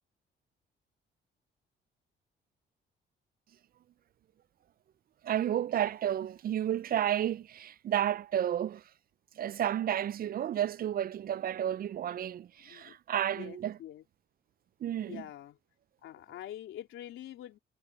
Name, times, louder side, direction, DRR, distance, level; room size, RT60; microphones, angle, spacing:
voice 1, 5.2-8.8 9.4-13.8 14.8-15.2, right 10 dB, 50° right, 0.4 m, -31 dB
voice 2, 12.6-13.0 13.3-14.0 15.1-15.6 16.0-17.6, left 12 dB, 85° left, 3.7 m, -45 dB
cardioid pair, 90°, 20 cm